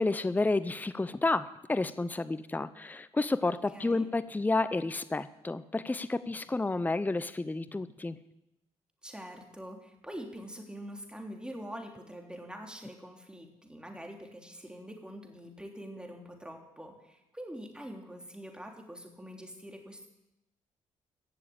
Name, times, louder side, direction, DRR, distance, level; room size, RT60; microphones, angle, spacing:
voice 1, 0.0-8.2, left 2 dB, 15° left, 14 dB, 0.6 m, -30 dB
voice 2, 3.5-4.1 9.0-20.1, equal, 5° right, 2 dB, 3.1 m, -45 dB
15.5 x 7.2 x 8.6 m, 0.91 s
supercardioid pair, 70°, 13 cm